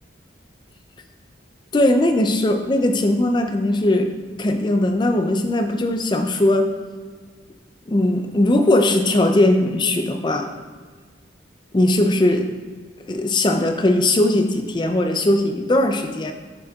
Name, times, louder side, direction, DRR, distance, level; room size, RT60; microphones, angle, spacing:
voice 1, 1.7-4.1 4.4-6.7 7.9-10.5 11.7-12.5 13.1-16.3, left 1 dB, 25° left, 6 dB, 0.4 m, -19 dB
6.9 x 6.5 x 2.3 m, 1.5 s
head